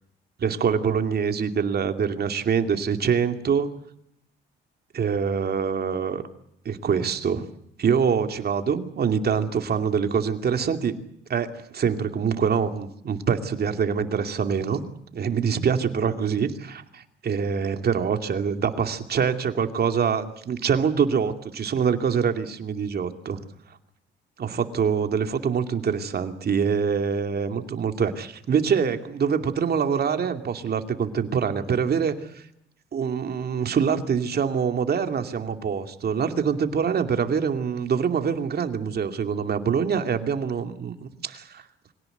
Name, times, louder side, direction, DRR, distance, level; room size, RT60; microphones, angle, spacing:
voice 1, 0.4-3.7 4.9-6.2 6.6-7.5 7.8-11.0 11.3-14.8 15.1-23.4 24.4-32.4 32.9-41.6, right 6 dB, 50° right, 7 dB, 2.6 m, -25 dB
25.0 x 18.0 x 8.0 m, 0.77 s
cardioid pair, 90°, 20 cm